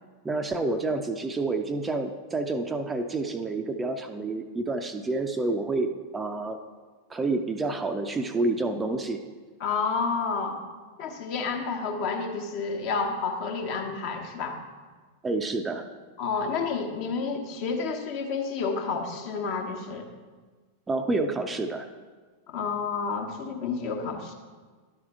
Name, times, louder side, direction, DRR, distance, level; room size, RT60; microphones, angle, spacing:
voice 1, 0.2-6.6 7.1-9.2 15.2-15.9 20.9-21.9, right 3 dB, 15° right, 6 dB, 0.5 m, -28 dB
voice 2, 9.6-10.6 11.0-14.6 16.2-20.0 22.5-24.3, left 5 dB, 45° left, 3 dB, 1.1 m, -30 dB
12.0 x 4.8 x 4.6 m, 1.4 s
figure-of-eight pair, 90°, 0 cm